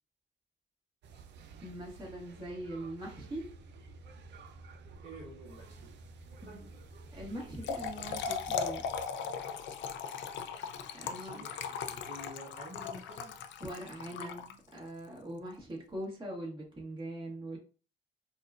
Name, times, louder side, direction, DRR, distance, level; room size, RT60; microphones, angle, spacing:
sound 1, 1.0-9.1, right 3 dB, 60° right, 0.5 m, -51 dB
voice 1, 1.6-3.5 7.1-8.9 10.9-11.4 13.6-17.6, right 1 dB, 25° right, 1.6 m, -42 dB
voice 2, 5.0-5.9 6.4-6.7 7.8-8.5 11.0-13.4, right 1 dB, 40° right, 1.3 m, -50 dB
Trickle dribble / Fill (with liquid), 7.4-14.9, left 6 dB, 70° left, 0.5 m, -38 dB
4.1 x 2.3 x 2.5 m
cardioid pair, 90°, 20 cm